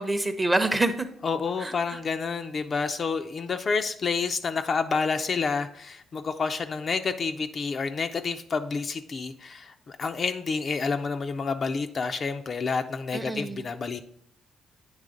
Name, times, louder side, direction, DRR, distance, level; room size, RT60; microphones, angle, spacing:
voice 1, 0.0-1.1 1.6-2.0 13.1-13.7, right 2 dB, 15° right, 8 dB, 0.7 m, -27 dB
voice 2, 1.2-14.0, left 5 dB, 45° left, 7 dB, 0.5 m, -29 dB
9.0 x 3.2 x 5.0 m, 0.71 s
cardioid pair, 90°, 0 cm